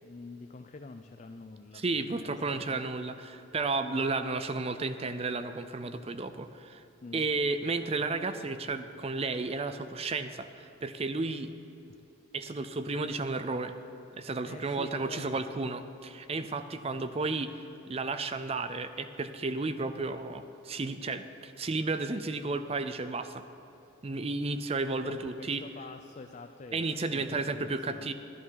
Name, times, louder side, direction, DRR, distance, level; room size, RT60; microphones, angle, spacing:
voice 1, 0.0-2.8 7.0-7.3 14.4-15.7 24.5-24.6 25.0-28.1, left 3 dB, 35° left, 6 dB, 0.4 m, -47 dB
voice 2, 1.7-6.8 7.1-11.5 12.3-13.7 14.1-23.4 24.0-25.6 26.7-28.1, right 3 dB, 30° right, 10 dB, 0.5 m, -33 dB
11.0 x 11.0 x 5.7 m, 3.0 s
head